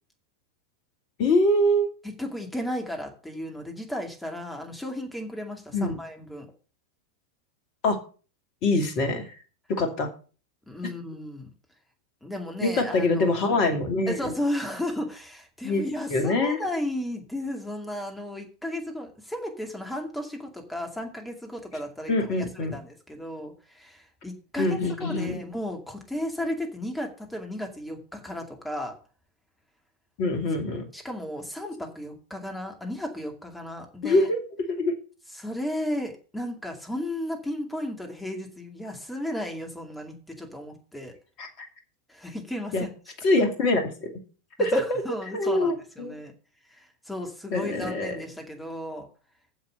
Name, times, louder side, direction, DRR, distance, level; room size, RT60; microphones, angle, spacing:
voice 1, 1.2-1.9 5.7-6.0 7.8-8.0 8.6-9.3 9.7-10.1 12.6-14.2 15.6-15.8 16.1-16.6 22.1-22.8 24.6-25.4 30.2-30.8 34.0-34.4 34.7-34.9 41.4-41.5 42.7-42.9 43.2-44.1 44.6-45.0 45.3-46.2 47.5-48.2, left 2 dB, 40° left, 5 dB, 2.6 m, -24 dB
voice 2, 2.0-6.5 10.7-11.5 12.2-13.6 14.1-28.9 30.9-34.3 35.4-41.1 42.1-42.9 44.6-46.3 46.7-49.1, left 1 dB, 5° left, 3 dB, 2.3 m, -34 dB
7.3 x 7.2 x 6.8 m, 0.38 s
figure-of-eight pair, 90°, 0 cm